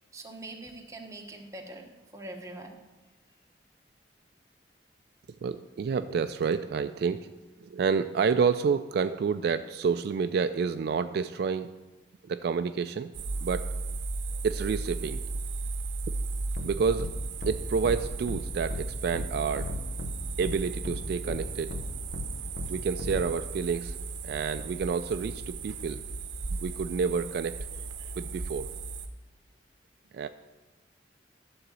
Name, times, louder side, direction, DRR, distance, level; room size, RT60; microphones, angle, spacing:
voice 1, 0.1-2.8, right 1 dB, 20° right, 2 dB, 1.0 m, -43 dB
voice 2, 5.4-7.3 7.6-11.7 12.2-13.1 13.4-13.7 14.4-15.2 16.6-17.1 17.5-19.7 20.4-21.7 22.7-24.0 24.2-26.0 26.6-28.7 30.1-30.3, right 5 dB, 60° right, 10 dB, 0.3 m, -29 dB
sound 1, 13.1-29.1, right 3 dB, 85° right, 0.7 m, -36 dB
sound 2, 16.6-16.7 17.0-17.1 17.4-17.5 17.8-18.0 18.3-18.4 18.7-18.8 19.1-19.3 19.6-20.1 20.4-20.5 20.8-21.0 21.3-21.4 21.7-21.8 22.1-22.3 22.6-22.7 23.0-23.2, left 2 dB, 55° left, 0.8 m, -35 dB
11.5 x 3.9 x 7.4 m, 1.1 s
head